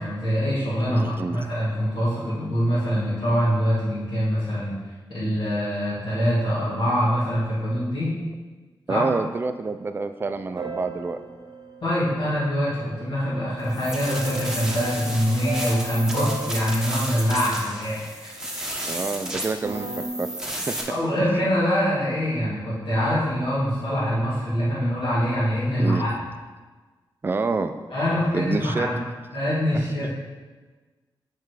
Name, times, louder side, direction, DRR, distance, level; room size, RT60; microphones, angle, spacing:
voice 1, 0.0-8.1 8.9-9.1 11.8-18.6 20.9-26.1 27.9-29.0 29.3-30.1, equal, 75° left, -12 dB, 2.6 m, -24 dB
voice 2, 0.8-1.5 8.9-11.2 18.9-20.3 20.7-20.8 25.8-26.1 27.2-27.7 28.3-28.9 29.7-29.8, right 3 dB, 25° right, 8 dB, 0.3 m, -27 dB
sound 1, 10.2-13.0 14.0-18.5 19.4-20.1, right 3 dB, 55° right, 0.8 m, -37 dB
sound 2, 13.7-20.8, right 1 dB, 5° right, 1.1 m, -33 dB
7.8 x 4.6 x 4.8 m, 1.3 s
wide cardioid pair, 150°, 9 cm